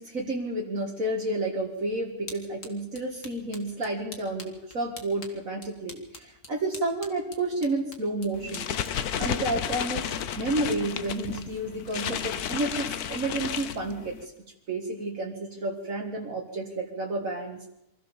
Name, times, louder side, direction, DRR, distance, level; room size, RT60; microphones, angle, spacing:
voice 1, 0.0-8.7 9.2-14.3 14.7-17.6, right 2 dB, 65° right, -1 dB, 2.4 m, -31 dB
sound 1, 1.6-10.3, left 3 dB, 55° left, 2.6 m, -48 dB
sound 2, 8.3-14.3, left 9 dB, 85° left, 1.4 m, -32 dB
24.5 x 14.5 x 7.3 m, 0.85 s
omnidirectional pair, 1.6 m